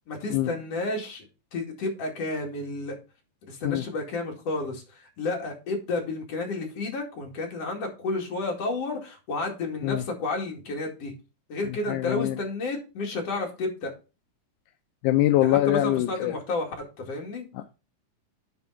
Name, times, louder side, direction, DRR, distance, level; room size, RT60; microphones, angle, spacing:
voice 1, 0.1-1.2 1.5-3.0 3.5-11.1 11.5-13.9 15.4-17.4, left 3 dB, 45° left, 1 dB, 3.1 m, -31 dB
voice 2, 11.9-12.4 15.0-16.3 17.6-17.7, left 14 dB, 80° left, 8 dB, 1.9 m, -23 dB
9.6 x 4.7 x 5.7 m, 0.31 s
omnidirectional pair, 4.1 m